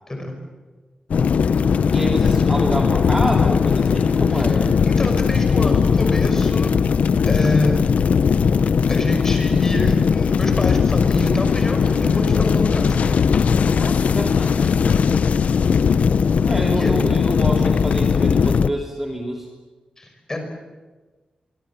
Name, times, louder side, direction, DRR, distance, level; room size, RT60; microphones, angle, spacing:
voice 1, 0.1-0.4 4.3-4.5 4.9-6.7 7.3-7.8 8.9-13.1 16.8-16.9 20.0-20.4, left 1 dB, 20° left, 4 dB, 5.7 m, -26 dB
sound 1, 1.1-18.7, left 6 dB, 65° left, 0.8 m, -18 dB
voice 2, 1.9-4.8 13.7-14.8 16.4-19.5, right 1 dB, 10° right, 0 dB, 2.9 m, -27 dB
25.0 x 24.0 x 7.3 m, 1.3 s
wide cardioid pair, 160°, 3 cm